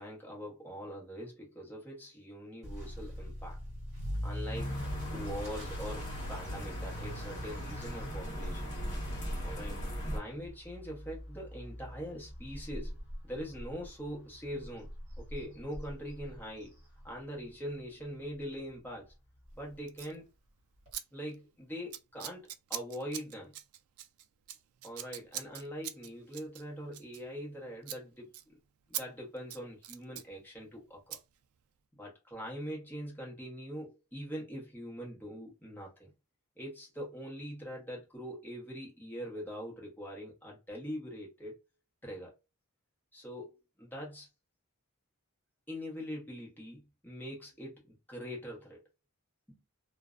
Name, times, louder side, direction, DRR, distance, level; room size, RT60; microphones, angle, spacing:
voice 1, 0.0-3.6 4.2-4.8 5.1-8.7 9.4-9.8 10.1-13.0 13.2-14.9 15.2-16.8 17.0-19.1 19.5-20.3 21.1-23.5 24.8-28.6 28.9-31.2 32.0-36.1 36.6-41.5 42.0-42.3 43.1-44.3 45.7-48.8 49.5-49.6, equal, 10° left, 0.9 m, -43 dB
Motor vehicle (road) / Accelerating revving vroom, 2.6-17.5 17.8-18.2 18.7-18.8 19.1-19.2 19.5-19.6 20.9-21.0, equal, 30° right, 1.3 m, -43 dB
sound 1, 4.5-10.2, equal, 35° left, 1.2 m, -39 dB
Scissors, 19.9-20.2 20.9-21.0 21.3-21.6 21.9-27.6 27.8-28.0 28.3-28.4 28.9-29.0 29.4-30.3 31.1-31.2, right 12 dB, 75° right, 0.3 m, -42 dB
2.5 x 2.1 x 2.4 m
head